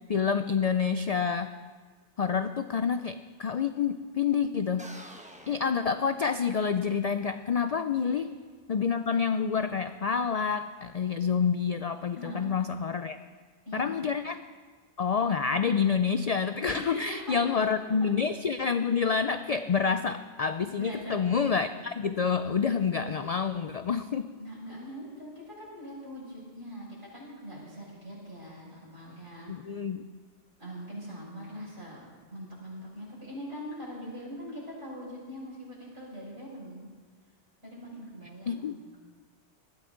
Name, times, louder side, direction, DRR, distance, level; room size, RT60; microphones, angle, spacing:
voice 1, 0.1-1.5 2.2-4.9 5.5-8.3 8.7-13.2 13.7-14.4 15.0-24.3 29.5-30.1 38.5-38.7, left 6 dB, 70° left, 10 dB, 0.3 m, -28 dB
sound 1, 4.8-6.7, right 1 dB, 5° right, 0.9 m, -49 dB
voice 2, 12.1-12.5 13.6-14.0 16.7-17.4 20.8-21.2 24.4-29.8 30.6-32.0 32.3-36.9 37.6-38.8, equal, 70° right, -7 dB, 6.1 m, -42 dB
20.0 x 13.0 x 3.9 m, 1.5 s
omnidirectional pair, 1.2 m